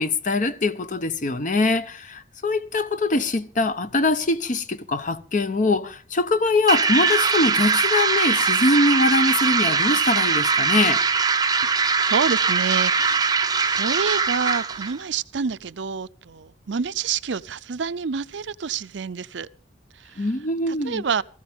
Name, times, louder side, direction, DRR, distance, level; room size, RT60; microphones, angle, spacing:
voice 1, 0.0-11.0 20.2-21.0, left 2 dB, 45° left, 0.9 m, -23 dB
sound 1, 6.7-15.0, right 5 dB, 20° right, 0.6 m, -21 dB
voice 2, 12.0-19.5 20.0-20.3 20.7-21.2, right 6 dB, 80° right, 0.6 m, -28 dB
18.0 x 15.5 x 3.6 m
head